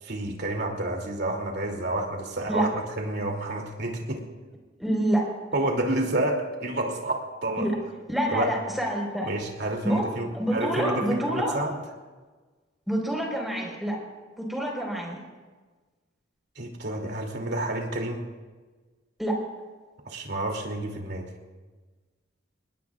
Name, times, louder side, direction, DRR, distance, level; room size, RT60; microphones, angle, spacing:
voice 1, 0.0-4.2 5.5-7.7 8.3-8.5 9.2-11.8 16.6-18.2 20.0-21.3, right 1 dB, 60° right, 1 dB, 2.9 m, -29 dB
voice 2, 4.8-5.3 7.6-7.7 8.1-9.3 9.8-10.0 10.3-11.6 12.9-14.0 14.4-15.2 19.2-19.4, right 1 dB, ahead, -1 dB, 4.5 m, -27 dB
26.5 x 20.5 x 2.5 m, 1.3 s
head